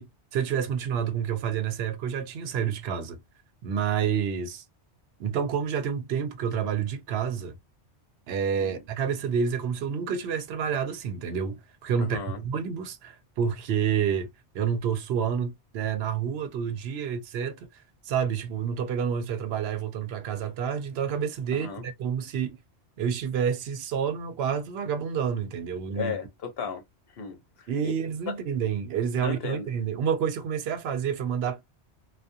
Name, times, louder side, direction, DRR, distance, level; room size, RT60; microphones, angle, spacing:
voice 1, 0.0-3.2 3.6-4.6 5.2-7.5 8.3-14.3 14.5-17.7 18.0-22.6 23.0-26.1 27.7-31.6, right 7 dB, 70° right, 0.8 m, -29 dB
voice 2, 12.0-12.4 21.5-21.8 25.9-26.8 27.1-27.9 29.2-29.7, left 6 dB, 65° left, 0.9 m, -35 dB
2.3 x 2.2 x 2.6 m
omnidirectional pair, 1.2 m